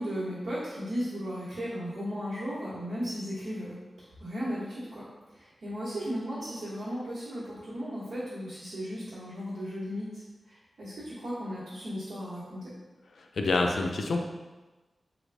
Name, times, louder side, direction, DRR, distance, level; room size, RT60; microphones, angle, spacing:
voice 1, 0.0-3.8 4.2-5.1 5.3-10.1 10.5-12.7, equal, 80° right, -12 dB, 1.0 m, -35 dB
voice 2, 13.2-14.2, left 3 dB, 80° left, 3 dB, 0.3 m, -27 dB
3.3 x 2.3 x 3.3 m, 1.2 s
wide cardioid pair, 80°, 0 cm